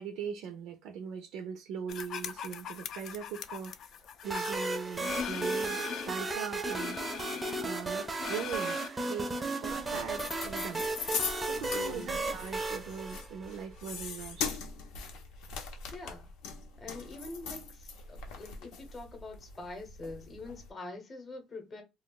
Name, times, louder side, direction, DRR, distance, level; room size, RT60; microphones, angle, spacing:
voice 1, 0.0-7.1 7.6-11.2 11.5-14.6, right 7 dB, 75° right, 0.4 m, -41 dB
sound 1, 1.9-6.2 6.6-8.9, left 7 dB, 50° left, 0.3 m, -40 dB
sound 2, 4.2-13.9, right 3 dB, 15° right, 0.4 m, -35 dB
sound 3, 9.7-20.7, left 5 dB, 85° left, 0.7 m, -41 dB
voice 2, 11.7-12.2 15.9-16.3 16.8-21.8, left 3 dB, 25° left, 0.7 m, -44 dB
2.3 x 2.2 x 3.8 m
cardioid pair, 140°, 0 cm